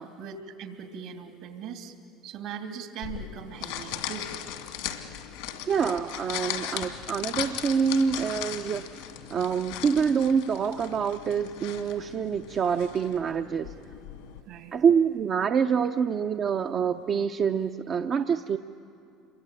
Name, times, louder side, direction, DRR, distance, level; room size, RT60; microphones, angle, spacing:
voice 1, 0.0-2.0 2.2-4.3 14.5-14.7, right 7 dB, 70° right, 5 dB, 2.9 m, -40 dB
sound 1, 3.0-14.4, left 11 dB, 80° left, 2.2 m, -38 dB
voice 2, 5.7-9.0 9.3-13.7 14.7-18.6, right 6 dB, 45° right, 6 dB, 0.8 m, -26 dB
27.5 x 23.0 x 9.1 m, 2.7 s
hypercardioid pair, 75°, 0 cm